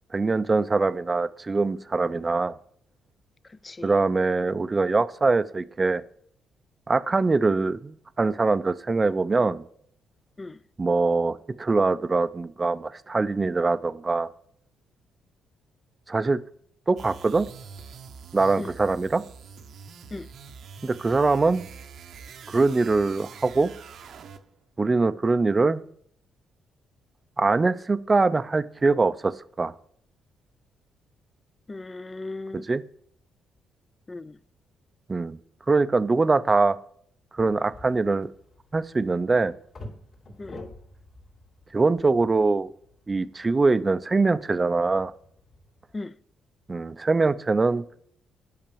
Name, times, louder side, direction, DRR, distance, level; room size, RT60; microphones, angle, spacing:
voice 1, 0.1-2.5 3.8-6.0 6.9-9.6 10.8-14.3 16.1-16.4 16.9-17.5 18.3-19.2 20.8-21.7 22.5-23.7 24.8-25.8 27.4-29.3 29.6-29.7 32.7-32.8 35.1-35.4 35.7-36.8 37.3-38.3 38.7-39.6 41.7-42.7 43.1-45.1 46.7-47.8, right 3 dB, 25° right, 0.5 m, -23 dB
voice 2, 3.4-3.9 10.4-10.6 18.6-18.7 20.1-20.3 31.7-32.6 34.1-34.4 40.4-40.6 45.9-46.2, left 2 dB, 25° left, 0.4 m, -37 dB
sound 1, 17.0-24.6, right 6 dB, 65° right, 0.8 m, -45 dB
sound 2, 37.4-46.0, left 1 dB, 55° left, 2.7 m, -48 dB
8.9 x 5.8 x 6.9 m
cardioid pair, 90°, 0 cm